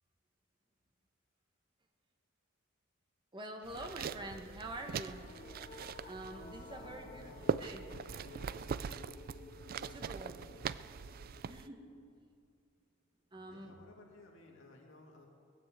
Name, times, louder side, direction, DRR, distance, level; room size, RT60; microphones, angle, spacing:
voice 1, 3.3-5.3 6.0-7.3 7.6-7.8 9.9-10.4 11.4-11.8 13.3-13.7, right 1 dB, 25° right, 3 dB, 1.5 m, -46 dB
sound 1, 3.6-11.7, right 6 dB, 45° right, 0.3 m, -41 dB
sound 2, 4.0-12.2, left 4 dB, 30° left, 0.5 m, -55 dB
voice 2, 6.6-8.2 9.6-10.7 13.5-15.3, left 2 dB, 65° left, 0 dB, 2.7 m, -58 dB
19.5 x 9.7 x 7.7 m, 2.4 s
head